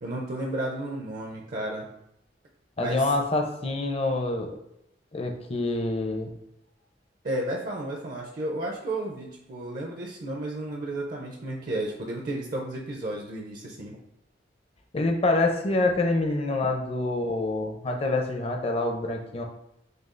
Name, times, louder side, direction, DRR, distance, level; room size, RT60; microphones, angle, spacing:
voice 1, 0.0-1.9 2.8-3.1 7.2-14.0, right 1 dB, 50° right, -1 dB, 0.5 m, -33 dB
voice 2, 2.8-4.6 5.1-6.3 14.9-19.4, left 2 dB, 35° left, 3 dB, 0.6 m, -26 dB
6.4 x 2.3 x 2.5 m, 0.79 s
head